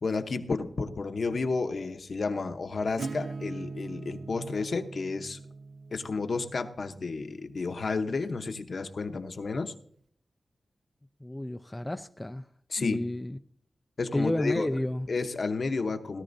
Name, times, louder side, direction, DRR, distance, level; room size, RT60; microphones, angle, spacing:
voice 1, 0.0-5.4 5.9-9.7 12.7-13.0 14.0-14.7 15.1-16.2, left 4 dB, 50° left, 7 dB, 0.9 m, -31 dB
Acoustic guitar / Strum, 3.0-8.5, right 4 dB, 75° right, 0.4 m, -42 dB
voice 2, 11.2-12.5 12.8-13.4 14.1-15.1, left 1 dB, 10° left, 8 dB, 0.4 m, -31 dB
17.5 x 12.5 x 2.6 m, 0.62 s
wide cardioid pair, 135°, 0 cm